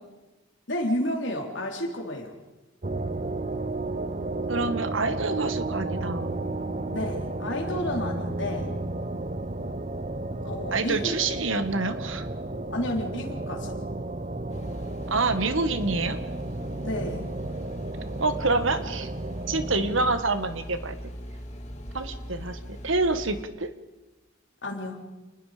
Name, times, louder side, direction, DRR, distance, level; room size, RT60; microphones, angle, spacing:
voice 1, 0.7-2.4 6.9-8.7 10.4-11.1 12.7-13.8 16.8-17.3 24.6-25.0, left 1 dB, 65° left, 2 dB, 3.7 m, -31 dB
sound 1, 2.8-20.2, right 2 dB, 35° right, 0.8 m, -33 dB
voice 2, 4.5-6.3 10.7-12.3 15.1-16.2 18.2-19.1 19.5-21.0 21.9-23.7, right 3 dB, 75° right, 10 dB, 1.7 m, -27 dB
sound 2, 14.5-23.4, equal, 35° left, 2.8 m, -40 dB
29.0 x 20.5 x 5.1 m, 1.1 s
head